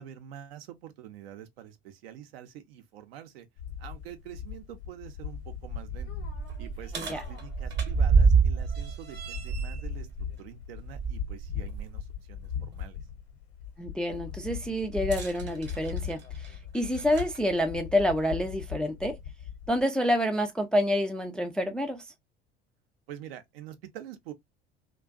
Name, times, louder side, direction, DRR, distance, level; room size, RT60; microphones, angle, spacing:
voice 1, 0.0-3.5 3.8-6.1 6.6-10.1 10.4-13.0 23.1-24.3, right 10 dB, 65° right, 0.6 m, -46 dB
sound 1, 3.6-19.8, left 8 dB, 70° left, 0.9 m, -39 dB
sound 2, 4.0-4.1 4.6-4.7 5.2-11.9 12.4-12.5 15.0-17.4 18.4-18.5 19.3-19.4, right 6 dB, 35° right, 0.8 m, -29 dB
voice 2, 13.8-19.2 19.7-22.0, equal, 5° left, 0.3 m, -28 dB
2.4 x 2.2 x 2.3 m
figure-of-eight pair, 65°, 32 cm